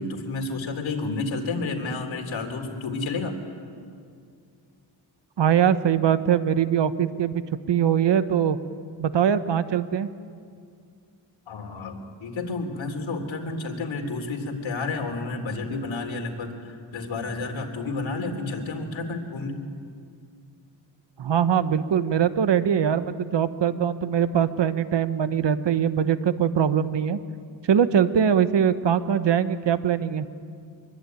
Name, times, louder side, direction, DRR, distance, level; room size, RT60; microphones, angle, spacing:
voice 1, 0.0-3.4 11.5-19.6, left 3 dB, 80° left, 3 dB, 3.5 m, -31 dB
voice 2, 5.4-7.4 7.7-8.6 9.0-10.1 21.2-27.2 27.7-30.3, right 8 dB, 65° right, 12 dB, 1.3 m, -22 dB
24.0 x 22.5 x 9.3 m, 2.3 s
cardioid pair, 90°, 46 cm